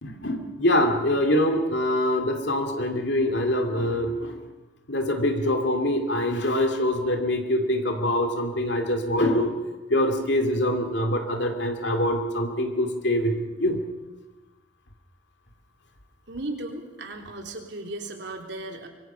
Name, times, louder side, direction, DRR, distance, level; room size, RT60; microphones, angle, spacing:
voice 1, 0.0-4.4 4.9-9.5 9.9-13.8, left 1 dB, 65° left, 4 dB, 2.5 m, -24 dB
voice 2, 16.3-18.9, right 2 dB, 65° right, 3 dB, 3.4 m, -36 dB
24.5 x 23.5 x 5.7 m, 1.1 s
head